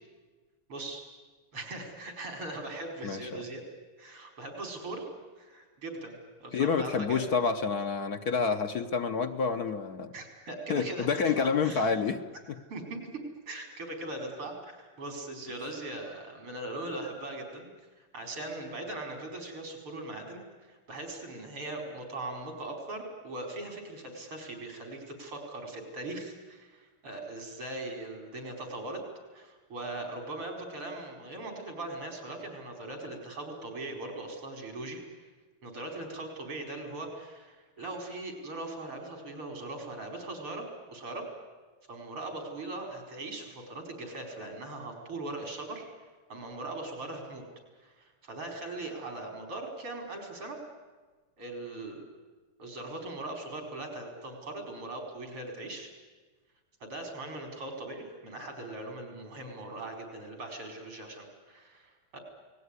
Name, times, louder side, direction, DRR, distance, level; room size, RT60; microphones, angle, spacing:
voice 1, 0.7-1.0 1.5-3.6 4.0-5.1 5.4-7.3 10.1-11.9 12.7-17.7 18.0-20.4 20.7-29.0 29.3-35.0 35.6-41.3 41.9-45.9 46.3-47.4 47.8-50.6 51.4-52.0 52.6-55.9 56.8-62.2, right 2 dB, 85° right, 3 dB, 5.6 m, -40 dB
voice 2, 3.0-3.4 6.5-10.1 10.7-12.2, left 5 dB, 55° left, 7 dB, 1.3 m, -28 dB
28.5 x 19.5 x 9.7 m, 1.3 s
omnidirectional pair, 2.4 m